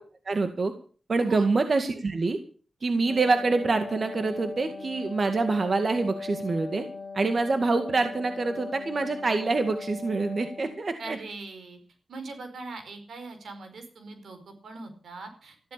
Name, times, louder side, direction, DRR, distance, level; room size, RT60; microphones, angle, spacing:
voice 1, 0.3-0.7 1.1-2.4 2.8-6.8 7.1-11.2, right 3 dB, 55° right, 7 dB, 2.0 m, -26 dB
Wind instrument woodwind instrument, 2.9-10.9, left 4 dB, 30° left, 2.8 m, -39 dB
voice 2, 11.0-11.8 12.1-15.7, right 3 dB, 90° right, 7 dB, 4.7 m, -41 dB
14.5 x 12.5 x 6.8 m, 0.40 s
cardioid pair, 70°, 0 cm